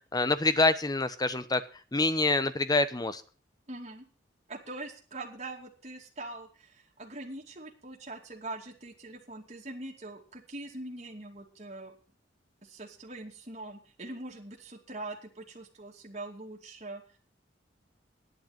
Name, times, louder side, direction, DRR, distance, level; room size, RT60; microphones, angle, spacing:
voice 1, 0.1-1.6 1.9-3.2, left 2 dB, 20° left, 12 dB, 0.9 m, -26 dB
voice 2, 3.7-4.1 4.5-12.0 12.6-17.2, right 2 dB, 40° right, -2 dB, 2.5 m, -43 dB
11.5 x 10.5 x 5.8 m, 0.39 s
head